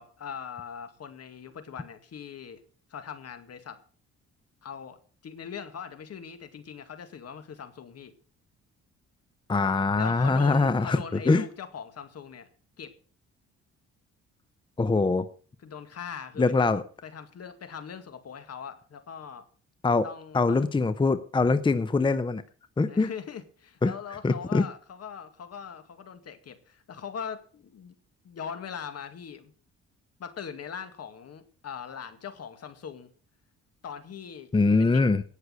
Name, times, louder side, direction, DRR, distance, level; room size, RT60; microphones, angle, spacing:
voice 1, 0.0-2.6 2.9-3.8 4.6-5.0 5.2-8.1 9.7-12.5 12.8-12.9 15.6-19.5 20.0-20.7 22.9-28.0 28.2-29.5 30.2-33.1 33.8-34.5 34.8-35.0, left 7 dB, 55° left, 10 dB, 2.1 m, -41 dB
voice 2, 9.5-11.4 14.8-15.3 16.4-16.8 19.8-20.0 20.3-22.4 22.8-23.1 23.8-23.9 24.2-24.6 34.5-35.2, left 3 dB, 15° left, 13 dB, 0.7 m, -23 dB
18.0 x 6.6 x 6.3 m, 0.42 s
cardioid pair, 90°, 30 cm